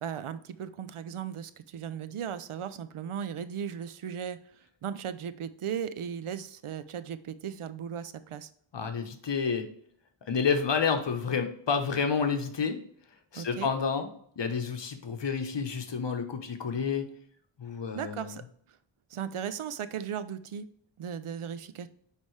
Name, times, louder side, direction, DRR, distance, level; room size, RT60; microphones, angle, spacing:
voice 1, 0.0-4.4 4.8-8.5 13.3-13.7 17.9-18.4 19.1-20.7 21.0-21.9, right 8 dB, 80° right, 12 dB, 0.6 m, -36 dB
voice 2, 8.7-9.7 10.3-12.8 13.3-14.1 14.4-17.1 17.6-18.4, left 5 dB, 60° left, 6 dB, 1.0 m, -29 dB
9.5 x 3.4 x 3.2 m, 0.63 s
wide cardioid pair, 95°, 49 cm